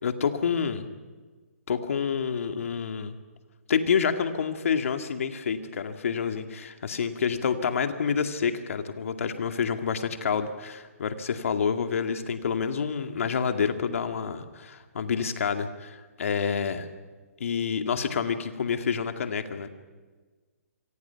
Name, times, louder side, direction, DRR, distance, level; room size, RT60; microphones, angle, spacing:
voice 1, 0.0-0.9 1.7-3.2 3.7-16.8 17.4-19.7, left 6 dB, 60° left, 7 dB, 2.2 m, -28 dB
26.5 x 24.5 x 5.9 m, 1.4 s
hypercardioid pair, 140°, 8 cm